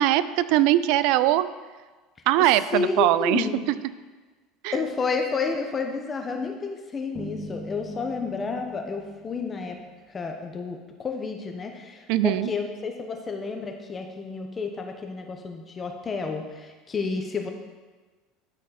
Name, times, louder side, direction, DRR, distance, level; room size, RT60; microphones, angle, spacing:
voice 1, 0.0-1.5 2.3-3.5 4.6-4.8 12.1-12.5, right 13 dB, 70° right, 15 dB, 0.4 m, -21 dB
voice 2, 2.5-3.6 4.7-9.8 10.1-17.5, left 4 dB, 25° left, 3 dB, 1.1 m, -30 dB
Bass guitar, 7.2-10.2, equal, 10° right, 1.7 m, -42 dB
12.5 x 4.3 x 4.3 m, 1.3 s
supercardioid pair, 95°, 0 cm